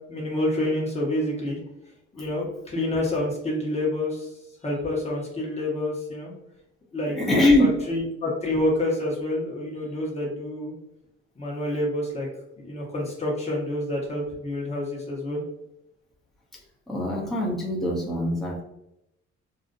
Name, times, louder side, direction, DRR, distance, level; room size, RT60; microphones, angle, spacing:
voice 1, 0.1-1.6 2.1-4.3 4.6-6.3 6.9-7.2 7.6-10.7 11.4-12.3 12.6-15.4, left 1 dB, 20° left, -3 dB, 1.0 m, -28 dB
voice 2, 7.1-7.7 16.9-18.6, left 1 dB, ahead, -4 dB, 0.6 m, -22 dB
2.5 x 2.0 x 2.5 m, 0.85 s
cardioid pair, 90°, 30 cm